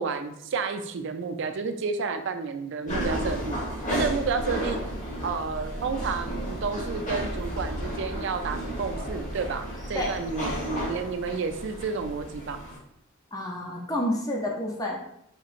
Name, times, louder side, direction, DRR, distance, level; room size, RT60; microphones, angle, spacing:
voice 1, 0.0-3.6 3.9-4.8 5.2-12.6, right 5 dB, 60° right, 7 dB, 0.4 m, -31 dB
sound 1, 2.9-12.8, equal, 35° left, 0.9 m, -33 dB
voice 2, 13.3-15.0, left 1 dB, 20° left, -1 dB, 0.5 m, -29 dB
4.4 x 2.8 x 2.4 m, 0.77 s
head